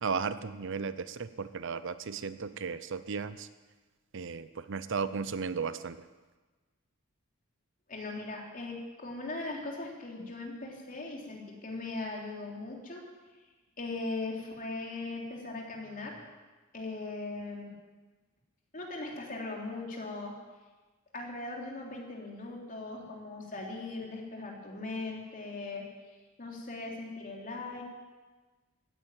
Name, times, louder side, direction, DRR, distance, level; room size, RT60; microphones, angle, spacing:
voice 1, 0.0-3.5 4.1-6.0, right 5 dB, 60° right, 13 dB, 0.7 m, -35 dB
voice 2, 7.9-13.0 13.8-16.2 16.7-17.7 18.7-20.3 21.1-27.8, left 2 dB, 40° left, -1 dB, 3.4 m, -39 dB
15.5 x 10.0 x 9.0 m, 1.3 s
head